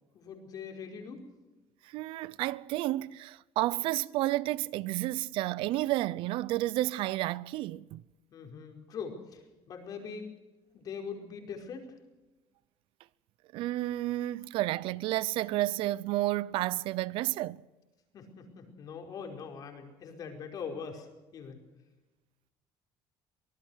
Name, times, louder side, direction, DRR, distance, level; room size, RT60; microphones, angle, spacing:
voice 1, 0.1-1.2 8.3-10.3 10.7-11.9 18.1-21.1 21.3-21.6, left 6 dB, 45° left, 4.9 m, -42 dB
voice 2, 1.9-8.0 13.5-17.6, right 16 dB, 70° right, 0.6 m, -31 dB
24.5 x 19.0 x 6.4 m
cardioid pair, 165°, 9 cm